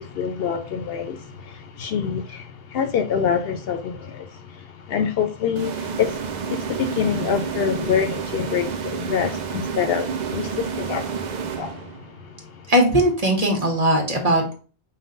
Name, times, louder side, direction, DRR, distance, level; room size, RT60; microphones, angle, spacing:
voice 1, 0.0-4.6 4.9-11.1 11.6-11.8, left 7 dB, 70° left, 0.7 m, -26 dB
sound 1, 5.6-12.2, right 6 dB, 55° right, 0.5 m, -30 dB
voice 2, 12.7-14.6, right 1 dB, 35° right, 1.2 m, -19 dB
5.4 x 2.2 x 3.8 m
omnidirectional pair, 1.1 m